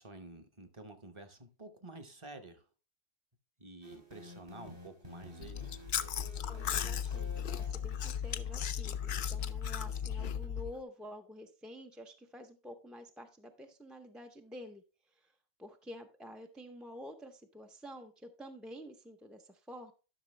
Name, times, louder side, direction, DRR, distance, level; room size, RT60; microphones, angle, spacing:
voice 1, 0.0-2.6 3.6-5.7, right 2 dB, 30° right, 0.9 m, -50 dB
sound 1, 3.8-8.4, equal, 50° right, 2.6 m, -52 dB
Chewing mastication, 5.4-10.7, left 8 dB, 55° left, 0.6 m, -36 dB
voice 2, 6.5-19.9, equal, ahead, 0.4 m, -50 dB
11.5 x 6.0 x 3.2 m
omnidirectional pair, 1.2 m